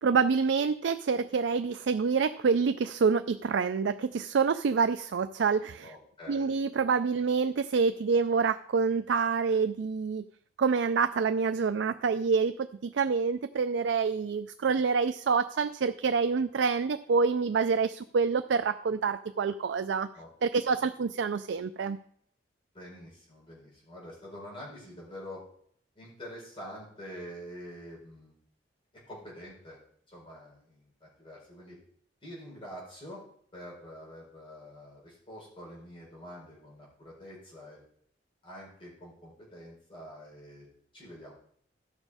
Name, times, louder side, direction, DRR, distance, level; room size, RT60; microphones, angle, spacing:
voice 1, 0.0-5.9 6.3-10.2 10.6-20.1 20.4-22.0, right 5 dB, 70° right, 10 dB, 0.4 m, -27 dB
voice 2, 5.8-6.5 20.1-20.3 22.7-25.4 25.9-28.4 29.1-29.8 30.1-31.8 32.2-33.2 33.5-37.8 38.4-40.7 40.9-41.3, equal, 30° left, -5 dB, 4.7 m, -46 dB
13.0 x 6.2 x 4.9 m, 0.62 s
head